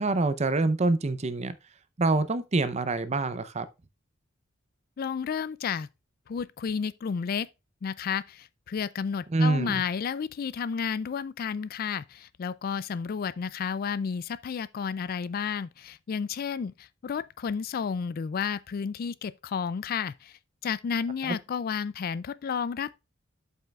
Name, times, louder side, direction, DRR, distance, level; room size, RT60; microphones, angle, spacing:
voice 1, 0.0-1.5 2.0-3.7 9.3-9.8 21.3-21.4, right 3 dB, 35° right, 0.6 m, -26 dB
voice 2, 5.0-5.9 6.3-7.5 7.8-20.3 20.6-23.0, left 6 dB, 45° left, 0.3 m, -32 dB
11.5 x 5.5 x 2.3 m
head